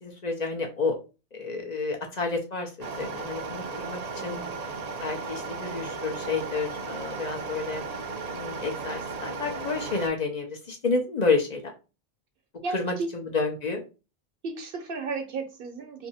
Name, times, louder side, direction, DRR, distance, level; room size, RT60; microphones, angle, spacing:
voice 1, 0.0-1.0 1.3-4.4 5.0-7.8 8.3-11.7 12.7-13.8, left 4 dB, 50° left, 0.7 m, -30 dB
sound 1, 2.8-10.1, right 4 dB, 50° right, 0.6 m, -35 dB
voice 2, 4.2-4.5 12.6-12.8 14.4-16.1, right 4 dB, 65° right, 0.9 m, -34 dB
2.7 x 2.6 x 4.1 m
omnidirectional pair, 1.0 m